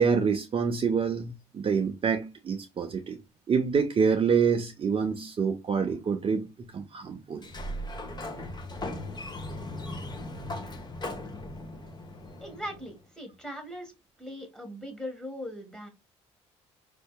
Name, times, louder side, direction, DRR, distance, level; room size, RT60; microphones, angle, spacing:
voice 1, 0.0-3.2 3.5-7.5, right 6 dB, 40° right, 0.6 m, -26 dB
Sliding door, 7.3-13.0, left 1 dB, 30° left, 0.9 m, -38 dB
voice 2, 12.4-13.9 14.2-15.9, equal, 5° left, 1.5 m, -39 dB
4.3 x 2.7 x 2.2 m
hypercardioid pair, 60°, 15 cm